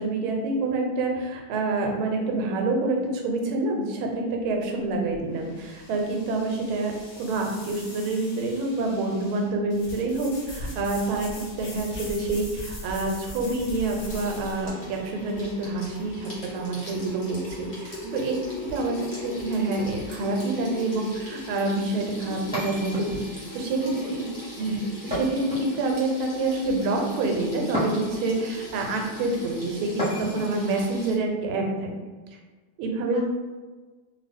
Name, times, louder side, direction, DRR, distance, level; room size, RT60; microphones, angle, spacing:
voice 1, 0.0-6.9 7.2-19.0 19.2-23.2 23.5-24.2 24.6-24.8 25.0-31.9 32.8-33.2, right 2 dB, 90° right, 2 dB, 1.5 m, -27 dB
sound 1, 4.3-14.7, left 1 dB, 75° left, 0.5 m, -41 dB
Water tap faucet / Sink (filling or washing), 14.1-31.1, left 2 dB, 35° left, 0.9 m, -39 dB
voice 2, 18.7-19.2 23.8-24.7 33.1-33.2, right 2 dB, 55° right, -8 dB, 0.9 m, -42 dB
sound 2, 22.5-23.5 25.1-26.1 27.7-28.4 30.0-30.6, equal, 5° right, 0.8 m, -31 dB
2.9 x 2.6 x 3.4 m, 1.3 s
omnidirectional pair, 2.2 m